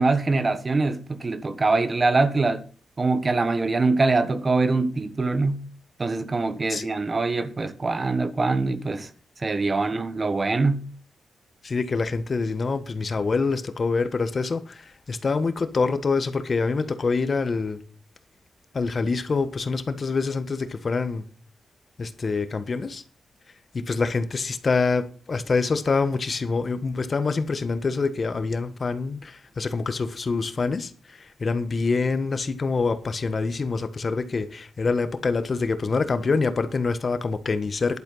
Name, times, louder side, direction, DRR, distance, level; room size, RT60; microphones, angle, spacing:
voice 1, 0.0-2.6 3.0-5.6 6.0-9.1 9.4-10.8, right 3 dB, 35° right, 1.3 m, -23 dB
voice 2, 11.6-17.8 18.7-21.2 22.0-23.0 23.7-38.0, left 4 dB, 45° left, 1.4 m, -26 dB
11.0 x 8.9 x 5.6 m
cardioid pair, 80°, 0 cm